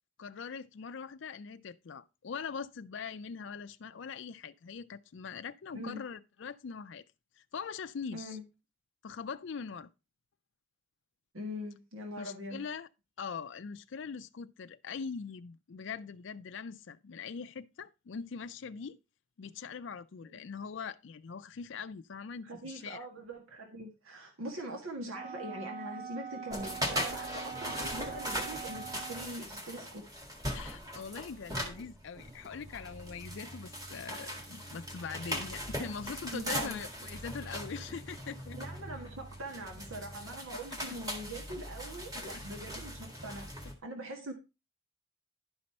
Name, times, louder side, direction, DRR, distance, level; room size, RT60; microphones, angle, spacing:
voice 1, 0.2-7.0 7.4-8.4 9.0-9.9 12.1-12.9 13.2-19.0 19.4-23.0 30.5-38.6 42.1-42.4, left 6 dB, 60° left, 0.4 m, -42 dB
voice 2, 8.1-8.4 11.3-12.6 20.2-20.3 22.4-30.0 36.3-36.8 38.6-43.5 43.8-44.3, equal, 85° right, 1.6 m, -42 dB
Wind instrument woodwind instrument, 25.1-29.4, right 6 dB, 35° right, 3.3 m, -43 dB
sound 1, 26.5-43.7, equal, 15° right, 1.7 m, -40 dB
11.0 x 5.3 x 4.3 m
head